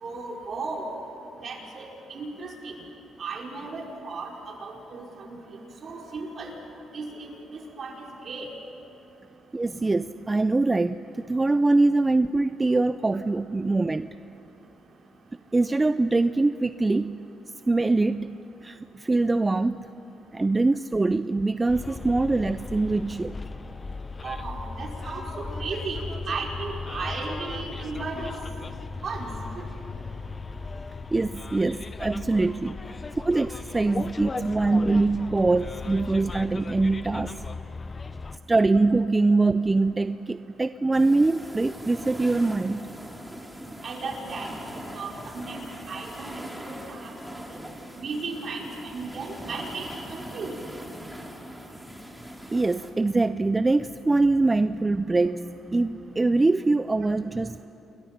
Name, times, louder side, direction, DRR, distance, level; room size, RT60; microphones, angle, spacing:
voice 1, 0.0-0.9 1.4-2.8 3.2-5.3 5.8-6.5 6.9-8.5 24.2-28.3 29.0-29.3 43.8-44.5 44.9-47.1 47.5-47.6 48.0-50.5, right 4 dB, 50° right, -1 dB, 4.5 m, -35 dB
voice 2, 9.5-14.1 15.5-17.2 17.7-19.9 20.3-23.4 31.1-32.8 33.2-37.3 38.5-42.9 52.5-57.6, right 3 dB, 20° right, 12 dB, 0.4 m, -23 dB
Bus, 21.7-38.4, left 4 dB, 30° left, 0.7 m, -37 dB
sound 1, 40.9-52.9, equal, 5° right, 3.0 m, -41 dB
28.5 x 21.5 x 5.8 m, 2.9 s
cardioid pair, 90°, 0 cm